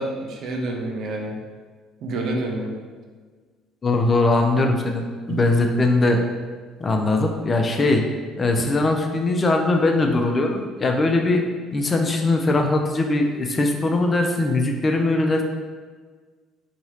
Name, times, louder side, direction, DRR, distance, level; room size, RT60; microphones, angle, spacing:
voice 1, 0.0-1.4 2.0-2.8 5.3-5.5, right 2 dB, 55° right, 1 dB, 0.5 m, -28 dB
voice 2, 3.8-6.2 6.8-8.0 8.4-11.4 11.7-15.4, left 2 dB, 30° left, 3 dB, 0.4 m, -20 dB
2.8 x 2.7 x 2.9 m, 1.5 s
figure-of-eight pair, 55°, 0 cm